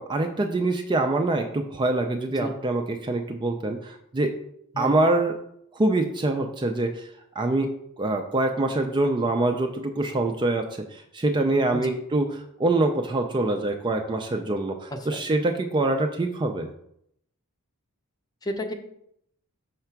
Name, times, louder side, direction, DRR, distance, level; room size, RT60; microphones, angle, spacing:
voice 1, 0.0-4.4 4.8-5.3 5.7-7.1 7.4-7.7 8.0-16.7, right 2 dB, 20° right, 5 dB, 0.4 m, -25 dB
voice 2, 18.4-18.7, equal, 15° left, 5 dB, 0.7 m, -31 dB
5.7 x 3.3 x 5.8 m, 0.74 s
head